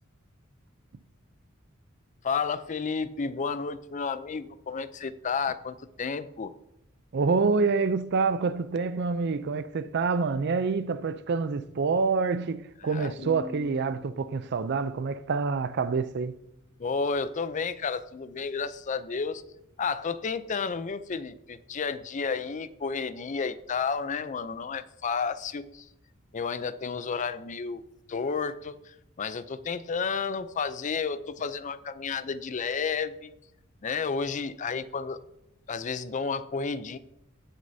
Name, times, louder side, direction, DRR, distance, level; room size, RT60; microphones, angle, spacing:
voice 1, 2.2-6.5 12.9-13.1 16.8-19.4 19.8-25.9 26.3-27.8 28.1-33.3 33.8-35.2 35.7-37.0, left 5 dB, 35° left, 0.4 m, -31 dB
voice 2, 7.1-16.4, right 4 dB, 55° right, 0.4 m, -27 dB
sound 1, 13.2-16.6, equal, 55° left, 3.4 m, -46 dB
16.5 x 6.4 x 2.7 m
head